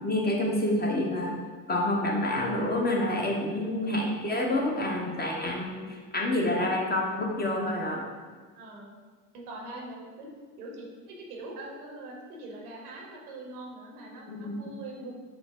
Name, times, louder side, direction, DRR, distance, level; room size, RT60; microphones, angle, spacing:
voice 1, 0.0-1.4 1.7-8.1 14.3-14.6, left 1 dB, 20° left, -1 dB, 0.9 m, -28 dB
voice 2, 3.5-3.8 8.6-9.0 9.3-10.3 10.6-15.1, right 2 dB, 85° right, 0 dB, 0.9 m, -42 dB
5.9 x 2.1 x 3.6 m, 1.5 s
hypercardioid pair, 65°, 43 cm